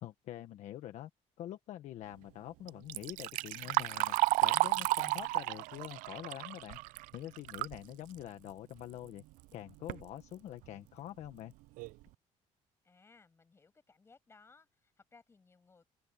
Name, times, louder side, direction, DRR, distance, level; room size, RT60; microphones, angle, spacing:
voice 1, 0.0-1.1 1.4-6.8 7.1-9.2 9.5-11.5, left 12 dB, 60° left, 1.4 m, -45 dB
Liquid, 2.7-7.8 8.2-8.3 9.2-9.3 9.7-10.0 10.6-10.7 11.2-11.3 11.8-12.0, right 21 dB, 85° right, 0.4 m, -32 dB
voice 2, 12.8-15.9, left 4 dB, 20° left, 7.4 m, -62 dB
open air
cardioid pair, 155°, 13 cm